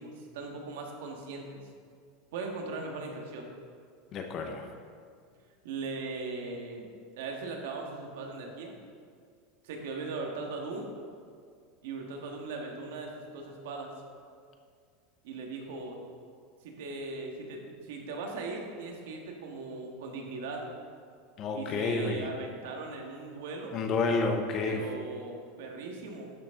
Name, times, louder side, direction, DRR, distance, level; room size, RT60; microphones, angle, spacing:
voice 1, 0.0-1.6 2.3-3.5 5.6-6.9 7.2-8.7 9.6-10.9 11.8-13.9 15.2-16.0 16.6-20.7 21.5-23.8 24.6-26.3, right 3 dB, 75° right, 1 dB, 1.6 m, -39 dB
voice 2, 4.1-4.7 21.4-22.3 23.7-24.9, left 3 dB, 30° left, 5 dB, 0.7 m, -30 dB
11.5 x 6.9 x 3.7 m, 2.2 s
supercardioid pair, 175°, 0 cm